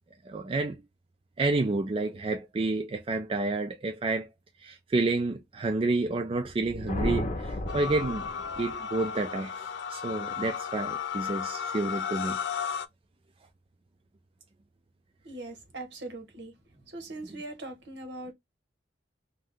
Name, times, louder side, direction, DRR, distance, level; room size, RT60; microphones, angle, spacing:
voice 1, 0.3-0.8 1.4-4.3 4.6-8.2 8.6-9.5 9.9-12.4, right 3 dB, 30° right, 0.3 m, -29 dB
Thunder, 6.5-8.8, left 1 dB, 35° left, 0.7 m, -33 dB
sound 1, 7.7-12.9, left 7 dB, 75° left, 0.3 m, -34 dB
voice 2, 15.2-16.5 16.9-18.3, right 2 dB, 70° right, 1.0 m, -41 dB
2.7 x 2.2 x 3.5 m
head